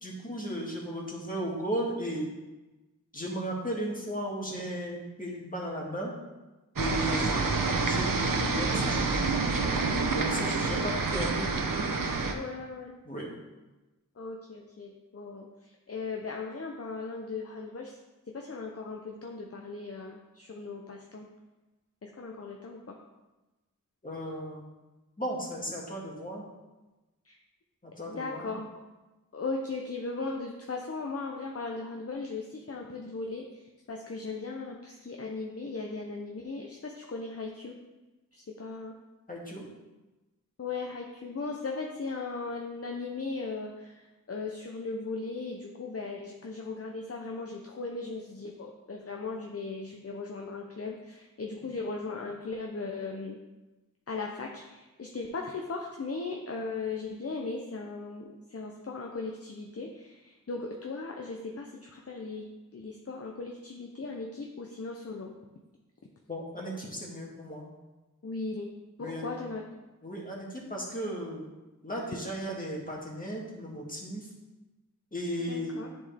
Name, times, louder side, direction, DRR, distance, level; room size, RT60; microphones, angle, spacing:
voice 1, 0.0-2.3 3.1-6.2 6.8-9.2 10.1-11.6 13.0-13.3 24.0-24.6 25.2-26.4 27.8-28.5 39.3-39.6 66.3-67.7 69.0-69.3 70.0-71.5 71.8-74.3 75.1-75.8, equal, 25° left, -3 dB, 1.9 m, -35 dB
sound 1, 6.8-12.3, right 3 dB, 85° right, 0.8 m, -28 dB
voice 2, 7.0-7.4 10.2-10.8 12.3-12.9 14.2-18.0 18.3-21.3 22.0-23.0 27.2-27.4 28.1-28.7 29.3-37.8 38.3-38.9 40.6-53.4 54.1-62.4 62.7-65.3 68.2-68.7 69.0-69.6 75.5-75.9, left 3 dB, 45° left, 1 dB, 0.7 m, -38 dB
10.5 x 4.4 x 3.4 m, 1.1 s
wide cardioid pair, 60°, 32 cm